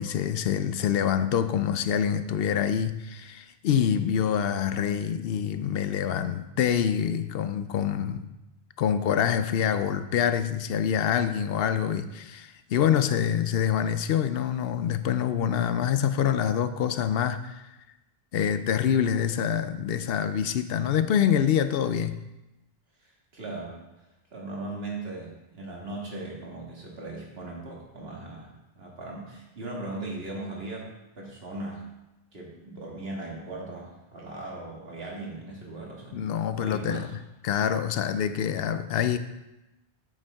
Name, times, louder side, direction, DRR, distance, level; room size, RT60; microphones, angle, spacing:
voice 1, 0.0-8.3 8.8-17.7 18.3-22.2 36.1-37.1 37.4-39.2, left 8 dB, 70° left, 11 dB, 0.8 m, -26 dB
voice 2, 23.0-23.8 24.3-30.9 31.2-31.9 32.3-36.2 36.6-37.1, right 2 dB, 75° right, -3 dB, 2.1 m, -38 dB
8.2 x 7.0 x 3.5 m, 0.98 s
omnidirectional pair, 1.0 m